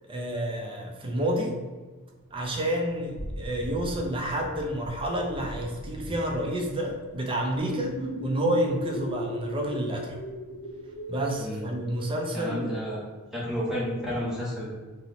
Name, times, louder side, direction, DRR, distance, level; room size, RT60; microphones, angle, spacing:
voice 1, 0.1-1.5 2.3-10.2 11.1-12.7, right 1 dB, 25° right, 1 dB, 0.4 m, -29 dB
Thunder / Rain, 2.2-11.7, equal, 65° right, 0.7 m, -43 dB
sound 1, 7.7-13.0, equal, 55° left, 0.6 m, -37 dB
voice 2, 12.3-13.0 13.3-14.7, equal, 5° right, -7 dB, 1.0 m, -31 dB
2.8 x 2.1 x 4.0 m, 1.3 s
head